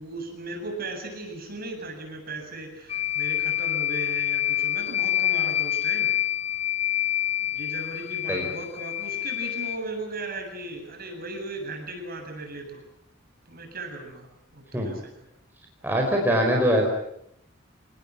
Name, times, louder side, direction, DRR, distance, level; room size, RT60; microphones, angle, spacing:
voice 1, 0.0-6.2 7.5-12.8 13.5-14.3 14.5-15.2 15.8-16.3, right 2 dB, 50° right, 3 dB, 7.8 m, -37 dB
sound 1, 2.9-9.8, left 13 dB, 35° left, 1.2 m, -27 dB
voice 2, 15.8-16.9, equal, 10° right, 0 dB, 4.7 m, -22 dB
27.0 x 19.0 x 8.5 m, 0.76 s
head